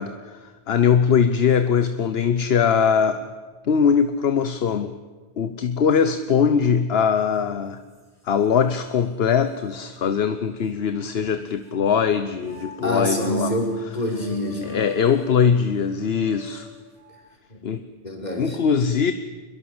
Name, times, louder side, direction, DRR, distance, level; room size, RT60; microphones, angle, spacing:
voice 1, 0.0-3.3 3.6-4.9 5.4-7.8 8.3-13.5 14.7-16.7 17.6-17.8 18.4-19.1, left 7 dB, 70° left, 10 dB, 1.1 m, -21 dB
sound 1, 7.3-7.4 7.9-8.8 9.5-9.6 10.6-11.8 12.4-17.3, right 1 dB, 15° left, 6.9 m, -45 dB
voice 2, 12.8-14.8 17.5-17.6 18.0-18.6, left 1 dB, 40° left, 0 dB, 5.2 m, -26 dB
23.5 x 22.0 x 7.9 m, 1.3 s
omnidirectional pair, 1.1 m